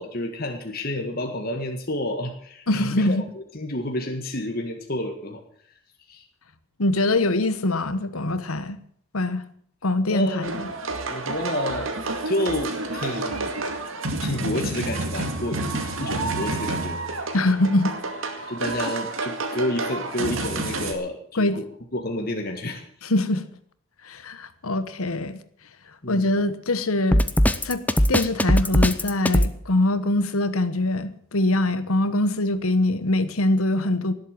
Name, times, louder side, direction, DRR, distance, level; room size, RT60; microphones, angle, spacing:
voice 1, 0.0-5.4 6.1-6.3 10.1-10.6 11.1-11.9 12.2-13.5 14.2-17.0 18.5-21.7 21.9-22.8 26.0-26.3, left 1 dB, 45° left, 1.8 m, -30 dB
voice 2, 2.7-3.2 6.8-8.8 9.1-9.4 9.8-10.7 17.3-17.9 21.3-21.6 23.0-23.4 24.0-25.4 26.1-27.3 27.6-27.8 28.1-34.1, left 2 dB, 85° left, 1.2 m, -23 dB
sound 1, 10.4-20.9, right 2 dB, 65° right, 2.3 m, -29 dB
Drum kit, 27.1-29.5, equal, 5° left, 0.7 m, -19 dB
18.5 x 8.2 x 7.7 m
head